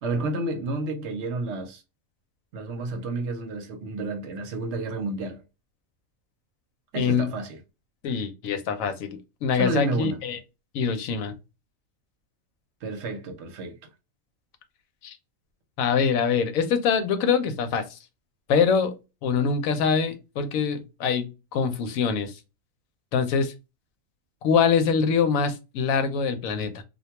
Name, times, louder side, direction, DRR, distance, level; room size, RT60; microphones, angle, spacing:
voice 1, 0.0-1.8 2.5-5.4 6.9-7.6 9.5-10.2 12.8-13.8, right 2 dB, 65° right, 0.9 m, -30 dB
voice 2, 7.0-7.3 8.0-10.4 10.7-11.3 15.0-15.2 15.8-18.0 18.5-18.9 19.2-22.3 23.1-23.5 24.4-26.8, left 6 dB, 80° left, 1.0 m, -24 dB
2.4 x 2.2 x 2.8 m
omnidirectional pair, 1.4 m